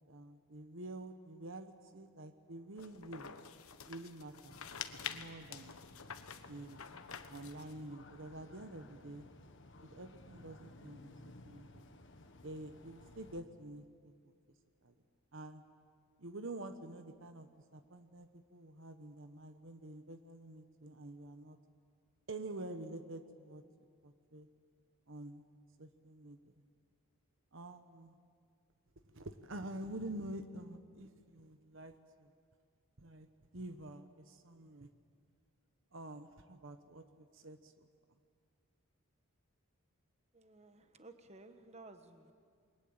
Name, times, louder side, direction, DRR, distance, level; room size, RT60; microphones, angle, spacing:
voice 1, 0.1-3.3 3.9-4.6 5.0-5.7 6.5-6.8 7.3-9.3 9.8-11.9 12.4-14.1 14.8-14.9 15.3-15.6 16.2-21.6 22.3-23.6 24.0-24.5 25.1-25.4 25.8-26.5 27.5-28.2 29.0-32.3 33.0-33.3 33.5-34.9 35.9-37.9, right 1 dB, 60° right, 9 dB, 1.1 m, -48 dB
sound 1, 2.8-7.8, left 8 dB, 75° left, 1.3 m, -48 dB
sound 2, 4.5-13.4, left 2 dB, 55° left, 1.6 m, -57 dB
voice 2, 40.3-42.3, right 2 dB, 30° right, 8 dB, 1.3 m, -56 dB
28.5 x 22.0 x 8.9 m, 2.1 s
head